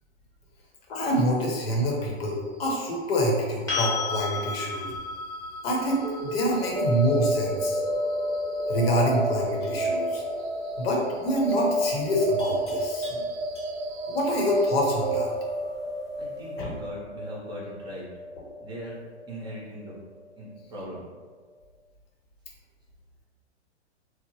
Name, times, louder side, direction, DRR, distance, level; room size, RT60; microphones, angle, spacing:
voice 1, 0.9-4.9 5.6-7.8 8.7-10.2 10.8-13.2 14.1-15.3 16.6-16.8, equal, 55° left, -1 dB, 0.9 m, -26 dB
sound 1, 3.7-11.5 14.3-14.4, left 4 dB, 10° left, 1.1 m, -36 dB
sound 2, 6.0-20.0, right 1 dB, 70° right, 0.5 m, -30 dB
Livestock farm animals working animals, 9.6-9.9 12.4-14.0, equal, 90° left, 1.2 m, -48 dB
voice 2, 16.2-18.1 18.6-18.9 19.3-19.9 20.4-21.0, equal, 15° right, -6 dB, 0.8 m, -39 dB
3.0 x 2.0 x 3.0 m, 1.5 s
hypercardioid pair, 120°, 35 cm